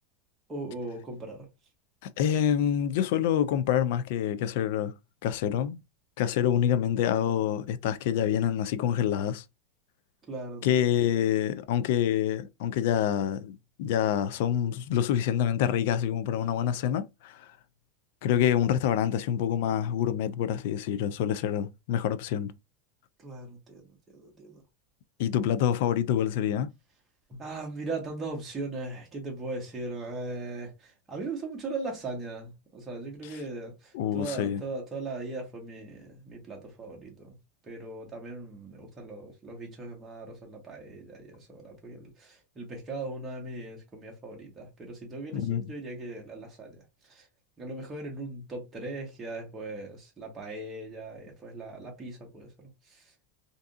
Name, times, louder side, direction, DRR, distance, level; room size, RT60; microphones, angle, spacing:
voice 1, 0.5-1.5 10.3-10.8 23.2-24.6 27.3-37.4 37.6-47.3 47.6-53.1, right 2 dB, 15° right, 1.2 m, -39 dB
voice 2, 2.0-4.9 5.2-5.8 6.2-9.4 10.6-17.5 18.2-22.5 25.2-26.7 33.9-34.6 45.3-45.6, left 9 dB, 60° left, 0.3 m, -26 dB
3.5 x 2.6 x 2.4 m
supercardioid pair, 150°, 0 cm